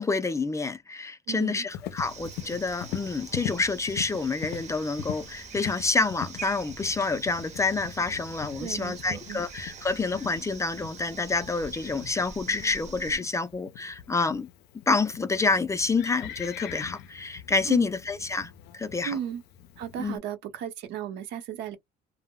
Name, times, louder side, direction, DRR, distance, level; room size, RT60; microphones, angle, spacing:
voice 1, 0.0-14.5 14.9-19.2 20.0-20.2, left 4 dB, 20° left, 0.4 m, -28 dB
voice 2, 1.3-1.6 8.6-9.4 17.7-17.9 19.0-19.4 19.8-21.8, right 9 dB, 80° right, 0.7 m, -35 dB
Livestock farm animals working animals, 1.7-20.2, left 10 dB, 80° left, 0.4 m, -42 dB
sound 1, 2.0-13.2, right 5 dB, 45° right, 0.7 m, -45 dB
2.2 x 2.0 x 3.5 m
cardioid pair, 110°, 17 cm